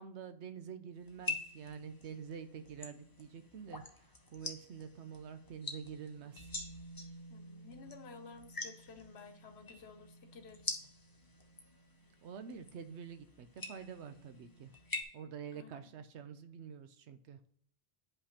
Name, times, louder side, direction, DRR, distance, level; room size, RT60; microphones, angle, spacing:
voice 1, 0.0-3.8 4.3-6.5 12.2-14.7 15.1-17.4, right 7 dB, 85° right, 9 dB, 1.0 m, -47 dB
sound 1, 1.1-15.0, left 2 dB, 25° left, 0.7 m, -46 dB
voice 2, 7.3-10.7 15.5-15.9, left 4 dB, 70° left, 7 dB, 1.1 m, -53 dB
9.8 x 5.4 x 2.9 m, 0.64 s
omnidirectional pair, 1.1 m